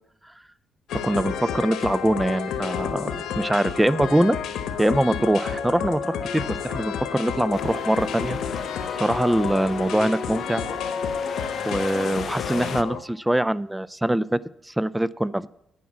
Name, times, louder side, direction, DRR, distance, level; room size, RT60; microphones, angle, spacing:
sound 1, 0.9-13.0, left 7 dB, 85° left, 1.1 m, -30 dB
voice 1, 0.9-4.4 4.8-8.4 9.0-10.6 11.7-15.5, right 1 dB, 10° right, 19 dB, 0.3 m, -23 dB
Wind, 7.5-12.8, left 7 dB, 55° left, 0.4 m, -38 dB
11.0 x 4.8 x 7.2 m, 0.77 s
cardioid pair, 90°, 0 cm